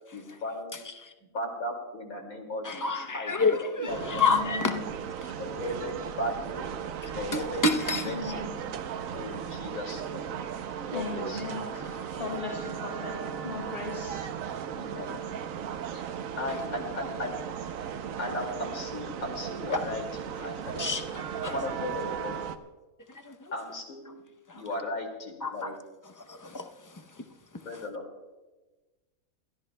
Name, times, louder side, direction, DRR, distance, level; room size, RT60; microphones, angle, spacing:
voice 1, 0.1-0.8 1.3-3.5 3.8-4.5 5.4-7.7 8.0-8.4 9.1-10.4 10.9-11.4 14.9-15.4 15.9-17.4 18.2-21.0 21.5-22.4 23.5-24.1 24.5-25.7 27.6-28.0, left 1 dB, 80° left, 2.8 m, -36 dB
voice 2, 2.6-4.7 7.3-8.0 16.5-16.6 19.7-19.8 20.8-21.0 21.4-21.5 23.1-23.5 24.5-24.6 25.4-25.7 26.3-26.7 26.9-27.2, left 4 dB, 25° left, 0.4 m, -28 dB
voice 3, 3.9-4.8 7.7-8.5 10.9-11.8 12.2-14.2 14.8-15.2, left 3 dB, 45° left, 6.6 m, -38 dB
sound 1, 3.9-22.6, right 8 dB, 75° right, 1.1 m, -36 dB
28.0 x 13.5 x 2.2 m
omnidirectional pair, 1.5 m